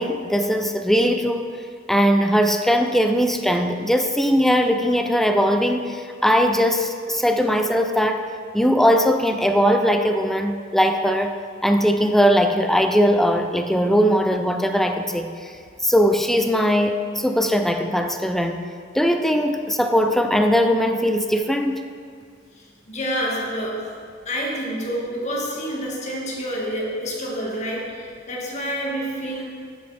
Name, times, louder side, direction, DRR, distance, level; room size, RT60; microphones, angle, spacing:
voice 1, 0.0-1.5 1.9-8.2 8.5-18.6 18.9-21.9, equal, ahead, 6 dB, 0.5 m, -20 dB
voice 2, 22.6-24.0 24.3-29.4, equal, 35° left, -3 dB, 2.0 m, -28 dB
11.5 x 7.7 x 4.3 m, 2.2 s
head